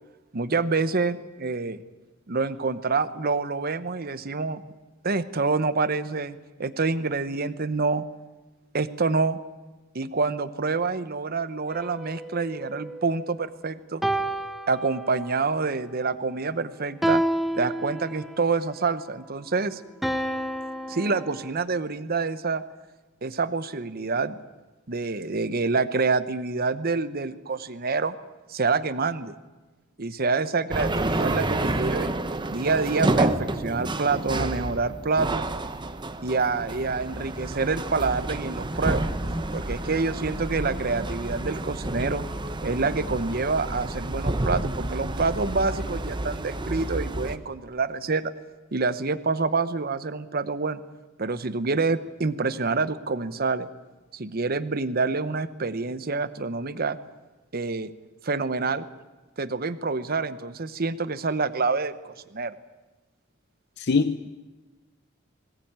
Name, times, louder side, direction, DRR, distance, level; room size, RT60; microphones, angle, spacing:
voice 1, 0.3-1.8 2.3-4.6 5.0-8.0 8.7-9.4 9.9-14.0 14.7-17.2 17.6-19.8 20.9-22.6 23.2-24.4 24.9-28.1 28.5-29.3 30.0-32.1 32.5-35.4 36.2-39.0 39.5-42.3 42.6-48.3 48.7-50.8 51.2-53.7 54.1-57.0 57.5-57.9 58.2-58.8 59.4-62.5, right 4 dB, 50° right, 13 dB, 0.9 m, -27 dB
sound 1, 11.7-13.4 14.0-15.5 17.0-18.5 20.0-21.5, right 1 dB, ahead, 1.0 m, -30 dB
sound 2, 30.7-47.4, right 2 dB, 25° right, 0.9 m, -29 dB
voice 2, 63.8-64.3, left 4 dB, 55° left, 11 dB, 0.7 m, -23 dB
21.0 x 18.0 x 8.9 m, 1.2 s
head